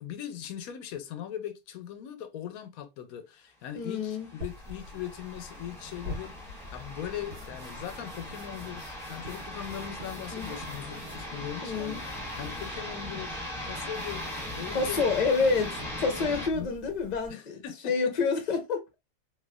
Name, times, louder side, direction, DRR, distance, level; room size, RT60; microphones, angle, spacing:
voice 1, 0.0-15.0 16.2-16.7 17.3-18.1, left 10 dB, 90° left, 1.1 m, -40 dB
voice 2, 3.7-4.3 10.3-10.6 11.6-12.0 14.7-18.8, left 4 dB, 40° left, 0.7 m, -28 dB
sound 1, 3.9-16.5, left 1 dB, ahead, 0.8 m, -39 dB
sound 2, 4.4-17.3, left 2 dB, 80° right, 1.7 m, -46 dB
3.2 x 3.0 x 2.2 m
omnidirectional pair, 1.5 m